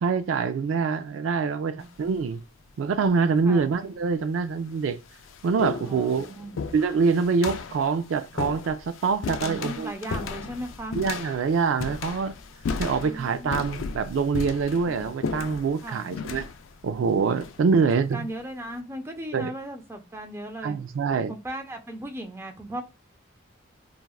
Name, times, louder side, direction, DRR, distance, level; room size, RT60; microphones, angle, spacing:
voice 1, 0.0-2.4 2.8-5.0 5.4-6.3 6.7-9.9 10.9-12.3 12.8-16.5 16.8-18.3 19.3-19.5 20.6-21.3, right 5 dB, 80° right, 0.3 m, -25 dB
voice 2, 1.7-2.2 3.5-3.7 5.8-6.6 9.4-11.0 13.0-13.6 15.8-16.1 17.7-20.8 21.3-22.8, right 1 dB, 15° right, 0.5 m, -37 dB
sound 1, 1.8-2.2 3.2-3.3 4.1-4.2 4.6-18.1, left 5 dB, 85° left, 0.4 m, -35 dB
3.3 x 2.3 x 2.3 m
head